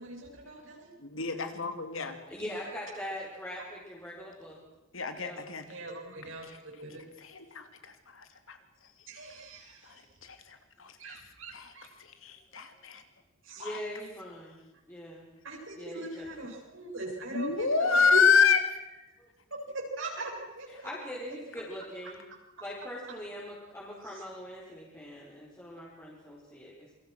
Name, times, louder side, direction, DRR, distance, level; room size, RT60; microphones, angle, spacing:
voice 1, 0.5-0.9 5.7-6.5 6.8-7.0 9.1-10.1 11.0-11.9 13.4-13.7 15.4-18.5 19.7-20.9 24.0-24.2, right 2 dB, 70° right, 0 dB, 7.8 m, -39 dB
voice 2, 1.1-2.2 4.9-5.6 7.2-8.6 9.9-10.0 10.2-10.9 11.5-11.7 12.0-13.0 13.6-13.8 17.3-18.6, left 6 dB, 80° left, 7 dB, 2.9 m, -27 dB
voice 3, 2.0-4.6 5.2-5.4 13.6-14.6 14.9-15.3 15.7-16.5 20.7-22.2 22.6-26.9, equal, 15° left, -6 dB, 5.2 m, -42 dB
28.0 x 23.5 x 6.3 m, 0.97 s
head